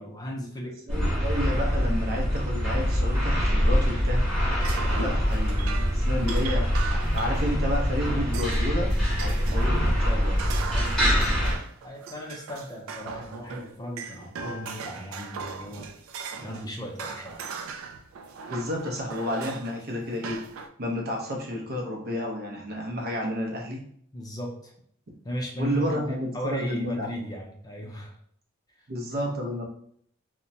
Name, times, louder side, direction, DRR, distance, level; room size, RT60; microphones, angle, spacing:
voice 1, 0.0-0.7 10.7-11.2 11.8-15.9 16.4-17.4 24.1-24.7 25.2-26.0 26.3-28.2 28.7-28.9, equal, 20° left, -1 dB, 0.5 m, -36 dB
sound 1, 0.9-11.5, equal, 5° left, 1.0 m, -24 dB
voice 2, 0.9-4.2 5.0-10.4 18.5-20.4 20.8-23.8 25.6-27.1 28.9-29.7, equal, 50° right, 0 dB, 0.6 m, -31 dB
sound 2, 4.5-7.8 8.3-8.7 8.9-16.7 17.0-19.8 20.2-20.7, right 5 dB, 85° right, 0.3 m, -39 dB
2.9 x 2.1 x 2.6 m, 0.64 s
head